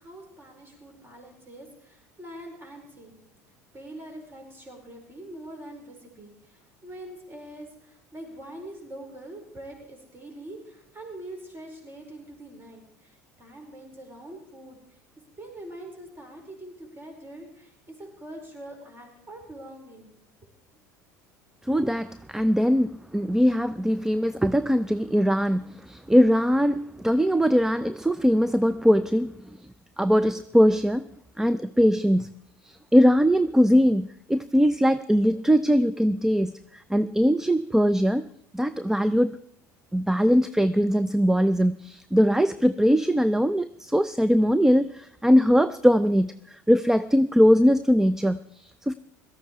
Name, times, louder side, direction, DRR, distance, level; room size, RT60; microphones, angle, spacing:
voice 1, 0.0-3.2 3.7-15.0 15.4-20.1, right 1 dB, 25° right, 2 dB, 4.8 m, -44 dB
voice 2, 21.7-29.3 30.0-31.1 31.4-32.3 32.6-38.3 38.5-39.4 39.9-48.9, equal, 5° right, 15 dB, 0.5 m, -21 dB
17.5 x 13.5 x 4.7 m, 0.75 s
hypercardioid pair, 75°, 9 cm